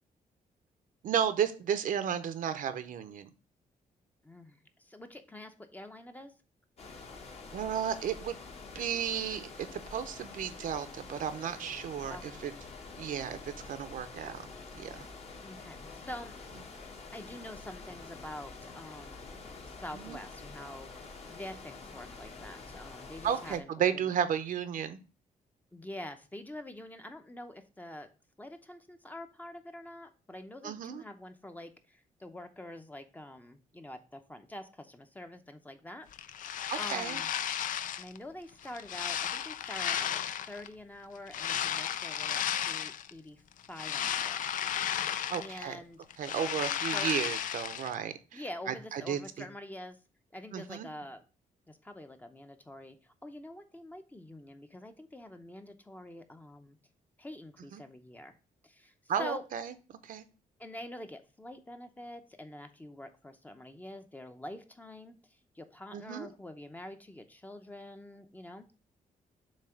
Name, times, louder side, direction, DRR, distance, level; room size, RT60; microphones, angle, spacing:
voice 1, 1.0-3.3 7.5-8.4 8.7-12.5 13.0-14.4 14.7-15.1 19.9-20.2 23.2-25.0 30.6-31.0 36.7-37.2 45.3-45.8 46.2-49.5 50.5-50.9 57.7-57.8 59.1-59.7 60.0-60.2 65.9-66.3, right 8 dB, 65° right, 0.7 m, -33 dB
voice 2, 4.2-6.3 12.1-12.5 15.4-16.3 17.1-20.9 21.3-23.8 25.7-28.1 28.4-36.1 36.8-37.3 38.0-43.4 43.7-44.5 45.0-45.1 45.4-46.0 46.9-47.1 48.3-50.0 50.3-51.2 51.7-56.8 57.2-58.4 58.6-59.4 60.6-68.7, left 1 dB, 10° left, 0.7 m, -46 dB
sound 1, 6.8-23.6, left 4 dB, 45° left, 1.3 m, -47 dB
sound 2, 36.1-38.2 38.6-40.7 41.3-43.1 43.5-45.7 46.0-47.9, left 9 dB, 65° left, 0.5 m, -34 dB
7.4 x 2.9 x 5.7 m
cardioid pair, 135°, 15 cm